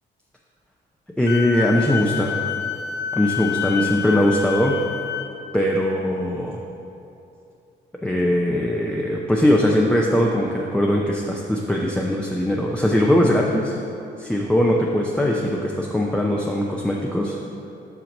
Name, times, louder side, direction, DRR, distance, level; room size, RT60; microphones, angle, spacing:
voice 1, 1.2-2.5 3.1-4.8 5.5-6.6 8.0-13.8 14.2-17.4, left 1 dB, 5° left, -2 dB, 0.6 m, -20 dB
Wind instrument woodwind instrument, 1.3-5.3, left 9 dB, 60° left, 0.6 m, -28 dB
5.8 x 5.7 x 5.3 m, 2.7 s
cardioid pair, 90°, 20 cm